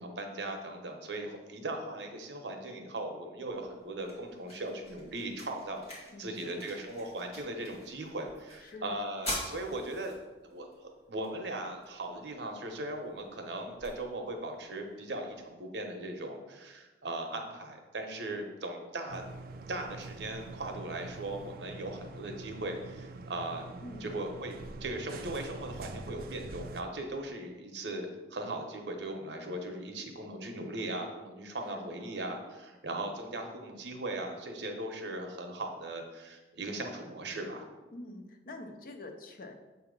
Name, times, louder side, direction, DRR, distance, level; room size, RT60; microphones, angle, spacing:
voice 1, 0.0-10.2 10.5-19.2 19.7-23.6 24.0-37.6, right 1 dB, 80° right, 3 dB, 0.8 m, -38 dB
sound 1, 3.5-15.5, left 1 dB, 35° left, 1.8 m, -46 dB
voice 2, 6.1-6.7 8.6-9.0 23.8-24.2 31.7-32.3 37.9-39.5, left 2 dB, 50° left, 4 dB, 0.6 m, -46 dB
sound 2, 19.1-26.8, right 3 dB, 55° right, 0.3 m, -45 dB
6.8 x 2.8 x 5.2 m, 1.2 s
head